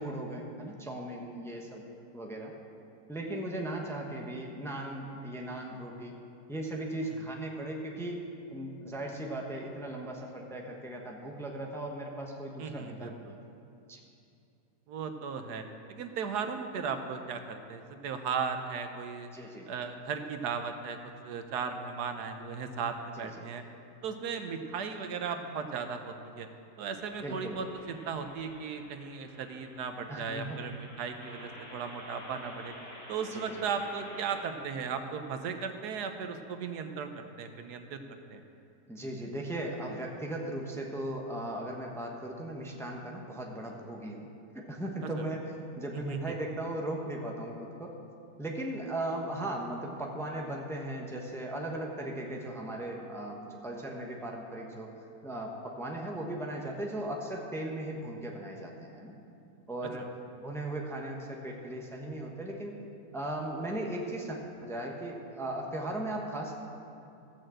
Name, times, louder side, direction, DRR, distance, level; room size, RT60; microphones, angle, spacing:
voice 1, 0.0-1.8 2.1-2.5 3.1-6.1 6.5-8.2 8.5-13.4 13.9-14.0 19.3-19.8 23.2-23.4 27.2-27.6 30.1-30.6 33.3-33.7 38.9-44.3 44.5-45.4 45.7-47.9 48.4-54.9 55.2-59.2 59.7-60.1 60.4-62.7 63.1-66.5, right 1 dB, ahead, 0 dB, 0.9 m, -37 dB
voice 2, 12.6-13.1 14.9-19.3 19.7-21.0 21.2-23.6 24.0-26.5 26.8-32.7 33.1-38.0 38.3-38.4 45.9-46.3 60.0-60.1, right 6 dB, 85° right, 7 dB, 1.4 m, -36 dB
sound 1, 27.0-34.4, left 1 dB, 70° left, 2.7 m, -50 dB
14.0 x 6.5 x 7.7 m, 2.6 s
omnidirectional pair, 1.7 m